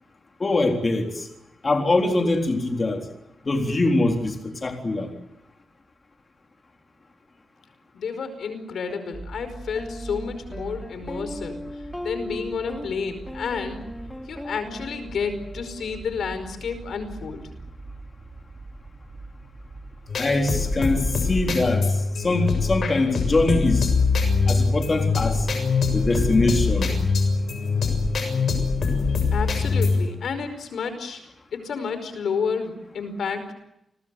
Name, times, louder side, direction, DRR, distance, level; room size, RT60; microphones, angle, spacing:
voice 1, 0.4-1.3 1.6-3.1 3.5-5.1 20.2-23.9 24.5-25.5 25.9-26.9, left 2 dB, 30° left, 3 dB, 3.8 m, -23 dB
voice 2, 7.9-11.6 12.0-13.8 14.3-17.5 29.3-31.2 31.5-33.5, left 5 dB, 75° left, 10 dB, 5.1 m, -30 dB
sound 1, 8.9-9.1 9.8-16.1, equal, 10° left, 2.6 m, -38 dB
sound 2, 9.1-26.6, right 2 dB, 20° right, 4.8 m, -43 dB
sound 3, 20.1-30.1, left 4 dB, 55° left, 6.9 m, -23 dB
30.0 x 22.5 x 7.8 m, 0.85 s
wide cardioid pair, 155°, 0 cm